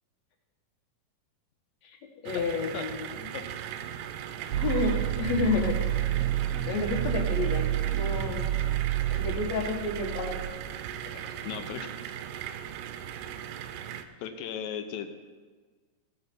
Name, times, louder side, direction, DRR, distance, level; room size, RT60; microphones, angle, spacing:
voice 1, 2.2-3.1 4.6-5.8 6.4-8.5 9.1-10.4, left 3 dB, 60° left, 3 dB, 2.2 m, -30 dB
sound 1, 2.3-14.0, right 10 dB, 90° right, 2.3 m, -38 dB
sound 2, 4.5-10.5, right 12 dB, 75° right, 1.9 m, -29 dB
voice 2, 11.5-11.9 14.2-15.1, left 9 dB, 85° left, 8 dB, 2.5 m, -36 dB
16.5 x 6.7 x 4.3 m, 1.5 s
omnidirectional pair, 3.9 m